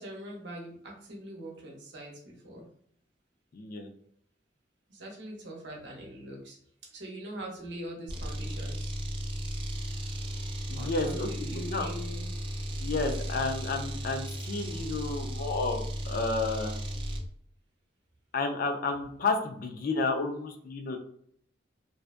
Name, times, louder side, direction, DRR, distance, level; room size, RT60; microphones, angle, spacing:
voice 1, 0.0-2.7 4.9-6.6 6.9-8.9 10.8-12.3, right 1 dB, 70° right, -1 dB, 0.8 m, -42 dB
voice 2, 3.5-3.9 10.7-11.9 12.8-16.7 18.3-21.0, left 3 dB, 50° left, 3 dB, 0.4 m, -31 dB
sound 1, 8.1-17.3, equal, 30° right, 0.3 m, -35 dB
2.6 x 2.2 x 2.4 m, 0.65 s
head